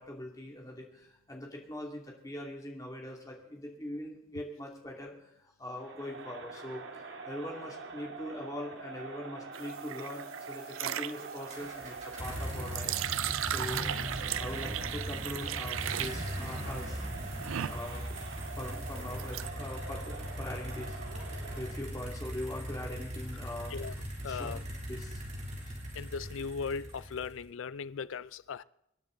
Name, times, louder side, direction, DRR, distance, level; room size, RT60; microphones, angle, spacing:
voice 1, 0.0-6.8 7.3-12.9 13.4-13.9 14.4-17.0 17.7-18.1 18.6-21.0 21.6-23.7 24.3-24.5 24.9-25.2, left 1 dB, 15° left, 2.7 m, -42 dB
Crowd, 5.8-21.9, right 4 dB, 65° right, 1.7 m, -45 dB
sound 1, 9.5-19.5, right 11 dB, 90° right, 0.4 m, -37 dB
sound 2, 11.5-27.5, equal, 35° right, 3.2 m, -40 dB
voice 2, 23.4-23.9 24.2-24.6 25.7-28.6, left 5 dB, 80° left, 0.4 m, -39 dB
26.0 x 10.0 x 4.0 m
head